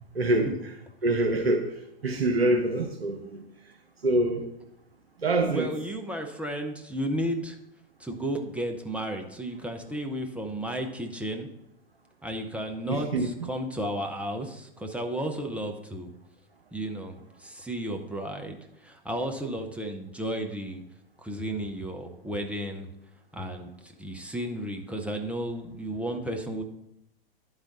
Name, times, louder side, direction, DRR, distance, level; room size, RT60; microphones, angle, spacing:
voice 1, 0.1-0.5 1.0-1.7 2.0-3.4 4.0-4.4 5.2-5.7 12.8-13.3, right 2 dB, 90° right, 2 dB, 0.8 m, -25 dB
voice 2, 5.4-7.6 8.0-11.5 12.2-16.1 16.7-20.8 21.2-22.9 23.3-26.6, right 1 dB, 5° right, 2 dB, 0.7 m, -33 dB
11.0 x 4.0 x 4.0 m, 0.83 s
figure-of-eight pair, 100°, 30 cm